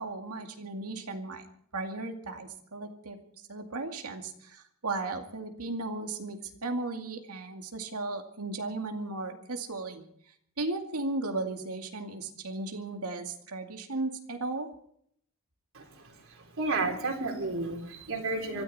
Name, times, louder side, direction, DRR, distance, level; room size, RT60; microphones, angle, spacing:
voice 1, 0.0-1.5 1.7-3.2 3.5-10.0 10.6-14.7, right 2 dB, 90° right, 4 dB, 2.3 m, -35 dB
voice 2, 15.7-18.6, right 3 dB, 65° right, 2 dB, 3.9 m, -32 dB
24.5 x 13.5 x 4.3 m, 0.66 s
head